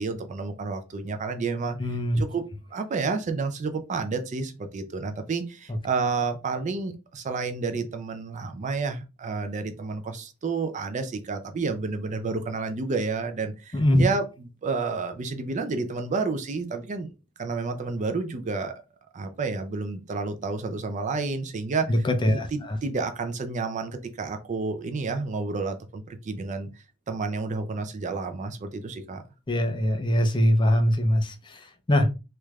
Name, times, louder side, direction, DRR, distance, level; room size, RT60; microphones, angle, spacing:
voice 1, 0.0-2.5 2.7-17.1 17.4-18.8 19.1-29.2, right 4 dB, 35° right, 0.4 m, -30 dB
voice 2, 1.8-2.2 13.7-14.0 21.9-22.5 29.5-31.3 31.9-32.1, equal, 20° left, 0.5 m, -21 dB
3.3 x 3.1 x 2.3 m
head